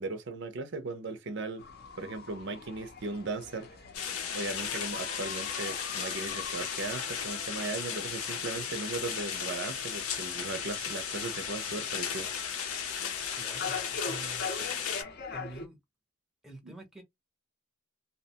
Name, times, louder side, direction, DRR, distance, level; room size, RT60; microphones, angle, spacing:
voice 1, 0.0-1.6 2.0-3.7 4.3-12.3 16.6-16.7, right 3 dB, 55° right, 0.5 m, -37 dB
sound 1, 1.6-15.7, left 4 dB, 45° left, 0.5 m, -44 dB
sound 2, 3.9-15.0, left 7 dB, 85° left, 0.7 m, -35 dB
voice 2, 13.4-14.5 15.3-15.8 16.4-17.0, right 2 dB, ahead, 0.6 m, -46 dB
2.8 x 2.1 x 2.7 m
head